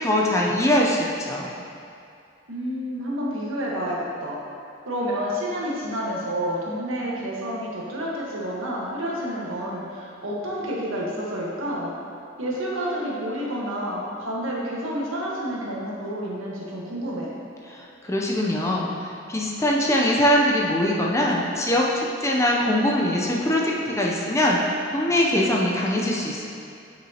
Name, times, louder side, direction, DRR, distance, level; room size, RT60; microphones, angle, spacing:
voice 1, 0.0-1.5 17.7-26.5, left 1 dB, 15° left, -2 dB, 0.5 m, -22 dB
voice 2, 2.5-4.4 4.9-11.9 12.4-17.3, equal, 85° right, -5 dB, 1.4 m, -29 dB
8.0 x 6.1 x 2.9 m, 2.5 s
head